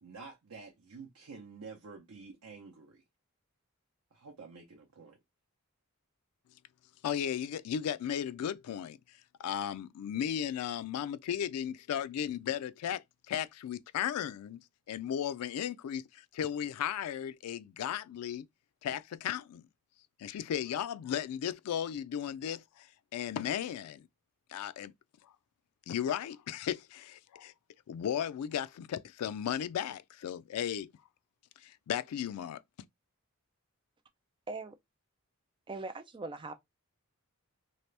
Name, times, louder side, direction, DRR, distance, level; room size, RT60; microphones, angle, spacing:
voice 1, 0.0-3.0 4.1-5.2, right 4 dB, 70° right, 0.7 m, -49 dB
voice 2, 7.0-9.0 9.4-18.5 18.8-19.6 20.2-22.9 23.1-24.1 24.5-24.9 25.9-27.5 27.9-30.9 31.6-32.6, left 9 dB, 85° left, 0.3 m, -35 dB
voice 3, 35.7-36.5, right 3 dB, 20° right, 0.4 m, -40 dB
2.9 x 2.4 x 3.2 m
head